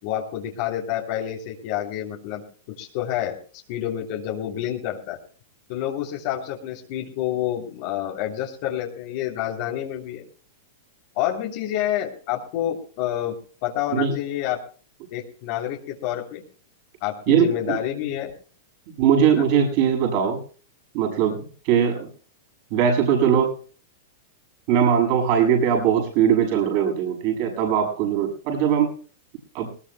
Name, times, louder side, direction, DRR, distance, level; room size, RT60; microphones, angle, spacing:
voice 1, 0.0-3.4 3.7-5.2 5.7-10.2 11.1-13.4 13.6-14.6 15.1-16.4 17.0-18.3 19.3-19.4, left 11 dB, 50° left, 0 dB, 3.1 m, -28 dB
voice 2, 17.3-17.8 19.0-20.4 20.9-21.4 21.6-22.1 22.7-23.5 24.7-28.9 29.5-29.7, right 8 dB, 50° right, 3 dB, 7.3 m, -20 dB
20.0 x 20.0 x 2.2 m, 0.41 s
hypercardioid pair, 135°, 0 cm